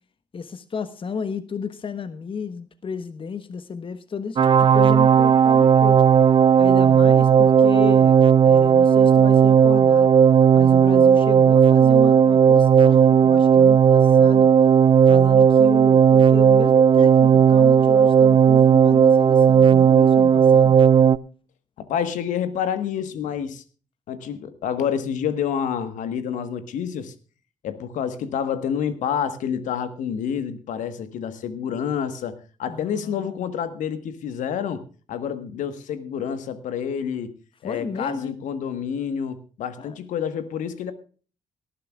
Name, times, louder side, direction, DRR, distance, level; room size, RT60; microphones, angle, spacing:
voice 1, 0.3-6.1 6.6-10.2 10.5-14.5 15.1-20.8 32.7-33.5 37.6-38.4 39.8-40.0, left 5 dB, 40° left, 13 dB, 1.2 m, -33 dB
sound 1, 4.4-21.2, right 7 dB, 35° right, 0.5 m, -15 dB
voice 2, 21.8-23.6 24.1-27.1 27.6-37.3 37.6-40.9, left 8 dB, 65° left, 11 dB, 1.4 m, -28 dB
18.5 x 14.0 x 2.4 m, 0.39 s
figure-of-eight pair, 40°, 14 cm